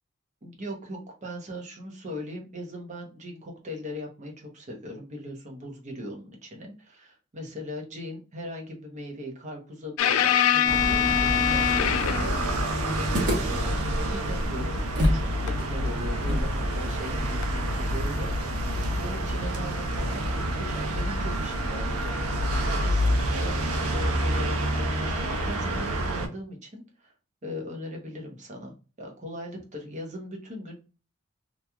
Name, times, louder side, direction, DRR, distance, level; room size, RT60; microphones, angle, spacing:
voice 1, 0.4-13.8 14.1-14.8 15.1-27.1 27.4-30.8, equal, 35° right, 1 dB, 0.8 m, -39 dB
sound 1, 10.0-12.5 15.5-15.6 17.4-17.6, left 9 dB, 70° left, 0.3 m, -23 dB
sound 2, 10.6-26.3, right 1 dB, 85° right, 0.6 m, -28 dB
sound 3, 13.1-15.3 15.6-15.7 16.2-19.3, equal, 55° right, 1.0 m, -30 dB
2.9 x 2.3 x 2.3 m, 0.34 s
head